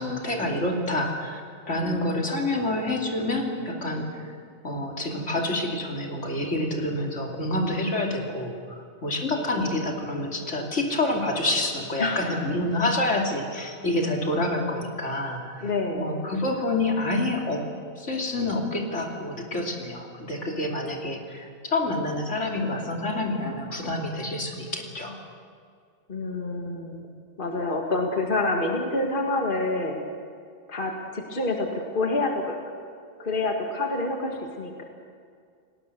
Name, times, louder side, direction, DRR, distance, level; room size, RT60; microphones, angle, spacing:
voice 1, 0.0-1.4 1.7-4.1 4.6-17.6 18.0-25.1, left 1 dB, 75° left, 1 dB, 3.3 m, -28 dB
voice 2, 15.6-16.1 26.1-27.1 27.4-30.0 30.7-32.6 33.2-34.8, left 2 dB, 45° left, 2 dB, 2.2 m, -27 dB
30.0 x 19.0 x 6.9 m, 2.3 s
omnidirectional pair, 1.2 m